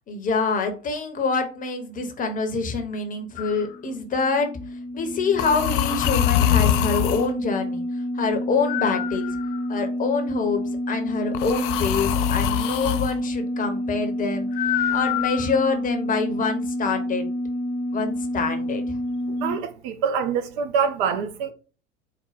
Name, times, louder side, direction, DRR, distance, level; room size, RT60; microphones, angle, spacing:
voice 1, 0.1-4.5 4.9-7.8 8.1-9.3 9.7-14.5 14.9-17.3 17.9-18.8, left 4 dB, 25° left, 0.8 m, -26 dB
sound 1, 3.3-19.5, left 1 dB, 65° left, 1.2 m, -29 dB
sound 2, 3.4-3.7 5.4-7.3 8.7-9.8 11.3-13.1 14.6-15.8, left 12 dB, 50° left, 0.4 m, -24 dB
voice 2, 19.4-21.5, right 6 dB, 45° right, 0.6 m, -25 dB
4.3 x 2.2 x 4.0 m
figure-of-eight pair, 75°, 35 cm